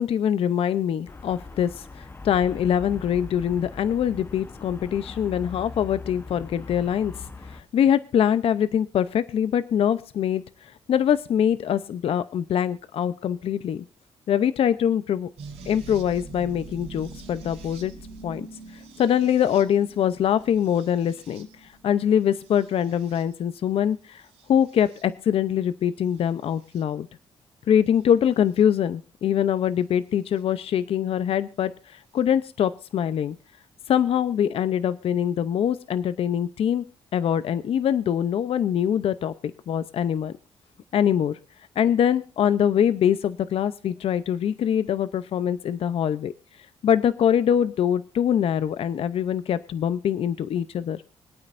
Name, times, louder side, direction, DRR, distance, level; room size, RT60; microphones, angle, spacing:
voice 1, 0.0-7.1 7.5-13.8 14.3-15.3 15.7-17.9 18.2-18.5 18.7-24.2 24.5-27.1 27.7-33.4 33.9-36.8 37.1-40.3 40.9-41.4 41.8-46.3 46.8-51.0, left 9 dB, 65° left, 13 dB, 0.7 m, -23 dB
Traffic noise roadway noise, 1.1-7.6, left 3 dB, 20° left, 1.0 m, -41 dB
sound 1, 15.4-23.5 24.2-25.0 26.2-26.8 28.5-28.6 30.4-30.5, right 3 dB, 90° right, 2.7 m, -44 dB
25.0 x 8.8 x 2.6 m, 0.37 s
cardioid pair, 90°, 10 cm